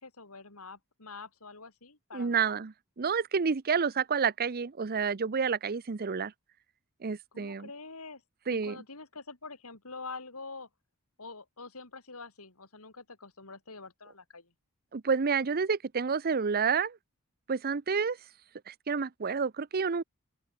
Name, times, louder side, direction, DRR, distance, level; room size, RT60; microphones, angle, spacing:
voice 1, 0.0-2.6 7.3-8.2 8.5-10.7 11.2-14.5, left 3 dB, 75° left, 4.1 m, -46 dB
voice 2, 2.1-6.3 7.0-7.7 8.5-8.8 14.9-17.0 17.5-18.2 18.7-20.0, right 5 dB, 45° right, 0.6 m, -29 dB
open air
head